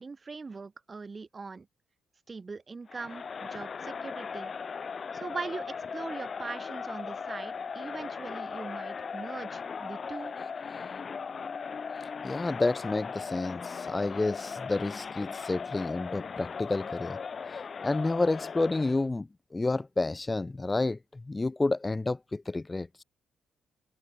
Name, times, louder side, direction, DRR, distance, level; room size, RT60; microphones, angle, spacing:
voice 1, 0.0-1.7 2.3-4.5 5.1-10.3, right 4 dB, 30° right, 3.4 m, -41 dB
Crowd, 2.9-19.1, left 5 dB, 40° left, 1.7 m, -38 dB
voice 2, 12.2-17.2 17.5-19.3 19.5-21.0 21.3-23.0, left 2 dB, 20° left, 0.9 m, -30 dB
cardioid pair, 90°, 0 cm